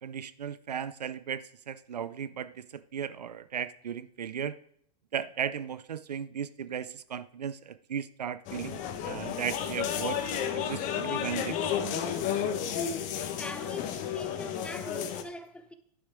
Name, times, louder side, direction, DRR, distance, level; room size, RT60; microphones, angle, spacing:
voice 1, 0.0-4.6 5.1-12.0, right 8 dB, 85° right, 0.6 m, -36 dB
sound 1, 8.5-15.2, left 8 dB, 40° left, 1.3 m, -32 dB
voice 2, 13.4-15.7, left 2 dB, 5° left, 0.9 m, -42 dB
11.5 x 6.5 x 4.7 m
hypercardioid pair, 105°, 20 cm